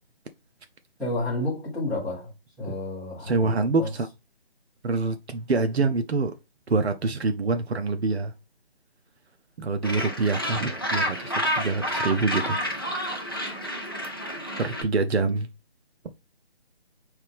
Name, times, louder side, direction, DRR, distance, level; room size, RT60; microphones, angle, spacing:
voice 1, 1.0-2.3 2.6-3.5 3.8-3.9, left 2 dB, ahead, 1.1 m, -30 dB
voice 2, 3.2-4.1 4.8-6.3 6.7-8.3 9.6-12.6 14.6-15.5, right 3 dB, 80° right, 0.6 m, -25 dB
Gull seagull, 9.8-14.8, equal, 25° left, 0.4 m, -29 dB
3.8 x 3.2 x 3.3 m
figure-of-eight pair, 155°, 32 cm